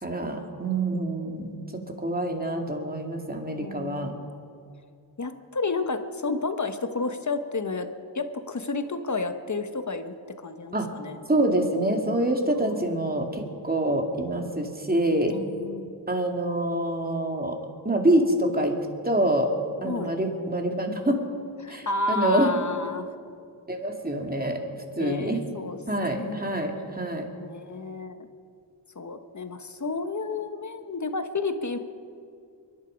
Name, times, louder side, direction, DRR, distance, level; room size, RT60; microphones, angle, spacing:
voice 1, 0.0-4.1 10.7-10.9 11.3-15.3 16.1-17.6 17.8-19.5 19.8-21.2 21.7-22.5 23.7-24.6 25.0-25.4 25.9-27.3, right 1 dB, 20° right, 2 dB, 2.7 m, -26 dB
voice 2, 1.4-1.9 3.6-4.2 5.2-7.9 8.1-10.1 10.4-11.2 12.6-13.1 15.3-16.0 19.8-20.1 21.6-23.1 24.9-25.8 26.1-26.4 27.4-28.3 28.9-31.8, left 3 dB, 40° left, 8 dB, 1.3 m, -31 dB
24.0 x 11.0 x 5.3 m, 2.4 s
cardioid pair, 50°, 45 cm